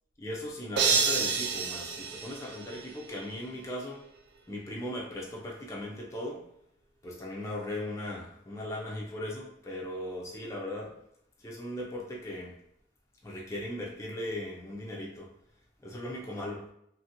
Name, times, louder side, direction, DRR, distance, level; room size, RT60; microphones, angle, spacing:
voice 1, 0.2-4.0 4.5-6.4 7.0-11.0 11.4-12.6 13.2-15.3 15.8-16.7, left 1 dB, 15° left, -3 dB, 0.4 m, -38 dB
sound 1, 0.8-3.1, right 5 dB, 75° right, 0.3 m, -29 dB
2.9 x 2.5 x 2.8 m, 0.75 s
head